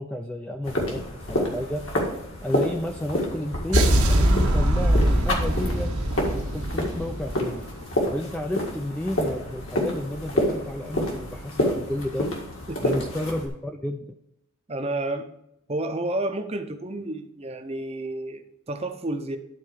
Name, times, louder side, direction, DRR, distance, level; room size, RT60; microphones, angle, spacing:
voice 1, 0.0-1.8 2.4-5.9 6.3-7.6 8.0-12.3 12.8-14.1, left 1 dB, 5° left, 4 dB, 0.3 m, -32 dB
sound 1, 0.6-13.5, left 1 dB, 65° left, 2.0 m, -29 dB
sound 2, 3.7-7.8, right 1 dB, 90° right, 1.4 m, -22 dB
voice 2, 14.7-15.3 15.7-19.4, right 2 dB, 25° right, 7 dB, 0.6 m, -30 dB
11.0 x 4.3 x 4.9 m, 0.79 s
head